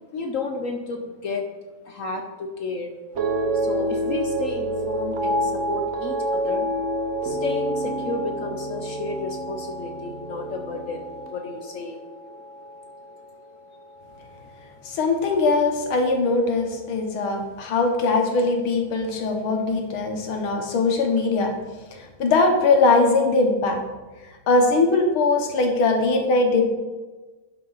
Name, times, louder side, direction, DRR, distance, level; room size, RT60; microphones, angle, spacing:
voice 1, 0.1-1.4 1.8-2.9 3.5-6.7 7.2-12.0, left 3 dB, 65° left, 3 dB, 0.8 m, -32 dB
sound 1, 3.1-13.5 13.8-14.4, right 1 dB, 50° right, 1.0 m, -28 dB
voice 2, 14.8-21.5 21.9-23.8 24.5-26.7, left 3 dB, 80° left, 3 dB, 2.0 m, -21 dB
11.5 x 5.6 x 4.0 m, 1.2 s
omnidirectional pair, 2.2 m